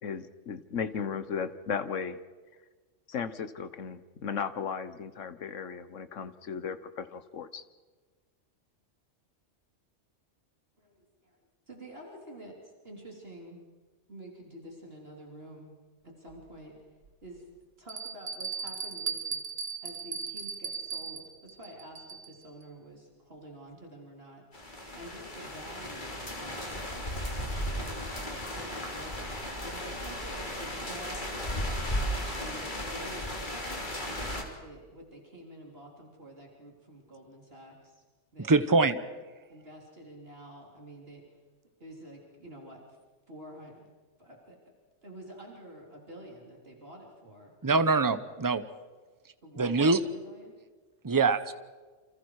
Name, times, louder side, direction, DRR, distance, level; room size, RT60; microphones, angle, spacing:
voice 1, 0.0-2.2 3.1-7.6, left 6 dB, 85° left, 12 dB, 1.5 m, -36 dB
voice 2, 10.8-11.4 11.7-13.6 14.1-15.7 16.0-16.8 17.2-17.5 17.8-19.4 19.8-24.7 25.0-26.7 27.4-31.8 32.3-33.5 34.0-38.0 38.3-38.9 39.5-41.2 41.8-43.0 43.3-43.8 44.2-44.6 45.0-47.5 49.4-50.5, right 1 dB, 55° right, -1 dB, 3.9 m, -48 dB
Bell, 16.3-16.4 17.0-17.1 17.9-22.5, right 5 dB, 85° right, 1.9 m, -37 dB
sound 1, 24.5-34.4, equal, 40° left, 3.4 m, -35 dB
voice 3, 38.5-39.0 47.6-48.6 49.6-50.0 51.0-51.5, right 3 dB, 20° right, 12 dB, 0.9 m, -24 dB
29.0 x 26.5 x 4.8 m, 1.4 s
omnidirectional pair, 1.3 m